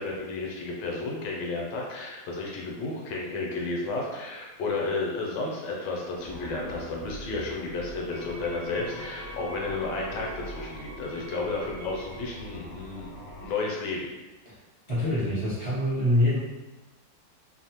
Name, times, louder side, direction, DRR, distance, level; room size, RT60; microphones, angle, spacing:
voice 1, 0.0-13.1 13.4-14.1, left 3 dB, 80° left, -1 dB, 1.2 m, -32 dB
sound 1, 6.2-13.5, equal, 60° left, 0.8 m, -42 dB
Wind instrument woodwind instrument, 8.1-12.4, right 1 dB, 70° right, 1.2 m, -47 dB
voice 2, 14.9-16.4, left 1 dB, 25° right, -10 dB, 0.5 m, -25 dB
3.1 x 2.0 x 2.8 m, 1.1 s
omnidirectional pair, 2.0 m